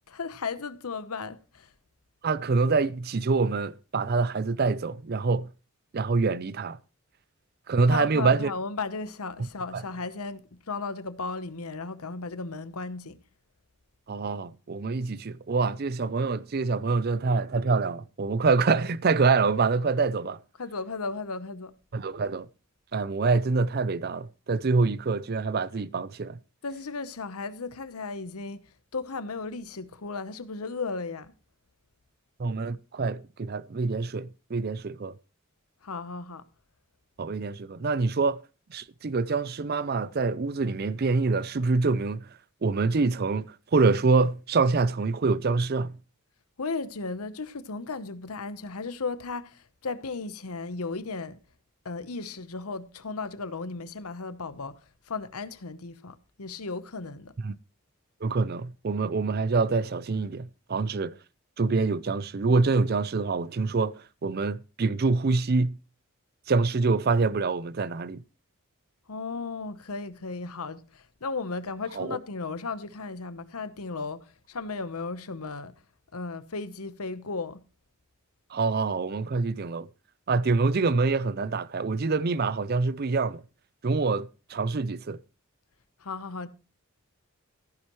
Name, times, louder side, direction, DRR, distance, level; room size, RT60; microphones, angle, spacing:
voice 1, 0.1-1.7 7.9-13.2 20.6-21.7 26.6-28.6 28.9-31.3 35.8-36.4 46.6-51.4 51.8-54.7 55.1-57.3 69.1-75.7 76.1-77.6 86.0-86.5, left 4 dB, 85° left, 1.0 m, -35 dB
voice 2, 2.2-5.5 5.9-6.8 7.7-8.5 9.7-9.8 14.1-20.4 21.9-22.5 22.9-26.4 32.4-35.1 37.2-38.4 38.7-42.3 42.6-45.9 57.4-57.5 58.2-61.1 61.6-64.0 64.2-65.8 66.5-68.2 71.9-72.2 78.5-79.9 80.3-83.4 83.8-85.2, right 4 dB, 45° right, 0.5 m, -26 dB
14.5 x 9.9 x 3.1 m
head